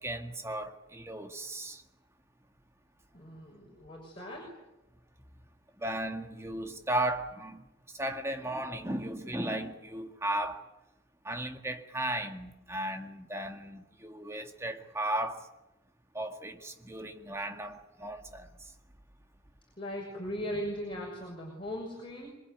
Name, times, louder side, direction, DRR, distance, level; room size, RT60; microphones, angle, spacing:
voice 1, 0.0-1.8 5.8-7.6 7.9-10.6 11.3-15.5 16.1-18.5, right 1 dB, 15° right, 1.9 m, -35 dB
voice 2, 3.1-4.6 19.8-22.3, equal, 25° left, 6.5 m, -39 dB
26.5 x 23.0 x 9.5 m
head